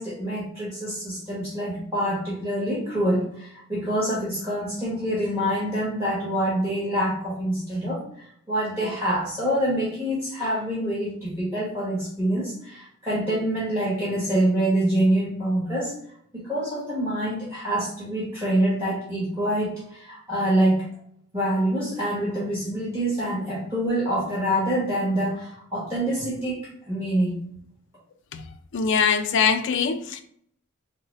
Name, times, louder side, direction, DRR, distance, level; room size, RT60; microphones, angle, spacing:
voice 1, 0.0-15.9 16.3-20.9 21.3-27.3, right 1 dB, 15° right, 1.3 m, -26 dB
voice 2, 28.7-30.2, left 6 dB, 60° left, 0.4 m, -22 dB
3.9 x 2.1 x 4.0 m
head